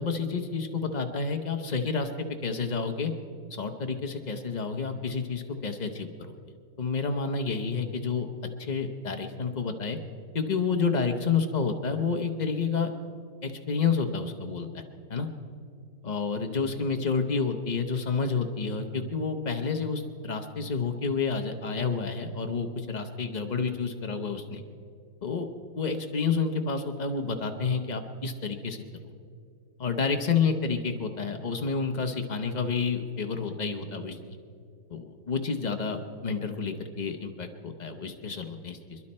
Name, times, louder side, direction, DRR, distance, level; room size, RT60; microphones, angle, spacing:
voice 1, 0.0-3.1 3.5-6.4 6.8-8.3 8.6-10.0 10.3-12.9 13.4-14.8 15.1-15.3 16.0-24.6 25.2-25.5 25.8-29.1 29.8-34.4 34.9-39.0, left 5 dB, 55° left, 5 dB, 0.4 m, -29 dB
27.0 x 11.0 x 4.3 m, 2.4 s
omnidirectional pair, 2.2 m